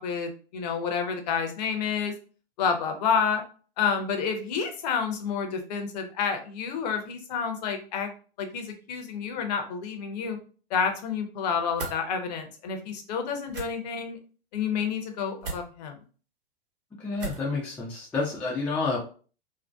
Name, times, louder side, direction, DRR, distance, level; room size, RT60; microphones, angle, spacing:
voice 1, 0.0-2.1 2.6-3.4 3.8-8.1 8.4-10.4 10.7-14.2 14.5-16.0, left 6 dB, 45° left, 5 dB, 0.6 m, -29 dB
sound 1, 11.8-12.0 13.5-13.7 15.4-15.6 17.2-17.5, right 4 dB, 65° right, 1.0 m, -35 dB
voice 2, 17.0-19.0, left 3 dB, 5° left, -4 dB, 0.3 m, -29 dB
2.6 x 2.1 x 2.2 m, 0.39 s
figure-of-eight pair, 105°, 29 cm